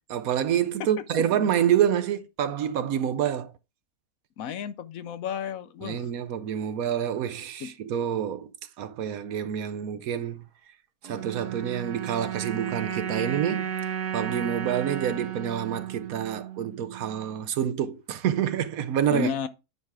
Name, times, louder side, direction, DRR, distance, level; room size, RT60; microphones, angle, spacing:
voice 1, 0.1-3.5 5.8-8.5 8.8-10.4 11.0-13.7 14.1-19.3, right 9 dB, 70° right, 1.1 m, -27 dB
voice 2, 4.4-6.1 7.6-7.7 19.1-19.5, left 8 dB, 70° left, 1.0 m, -32 dB
sound 1, 11.0-17.5, right 9 dB, 85° right, 1.7 m, -34 dB
9.6 x 3.5 x 4.8 m
omnidirectional pair, 1.7 m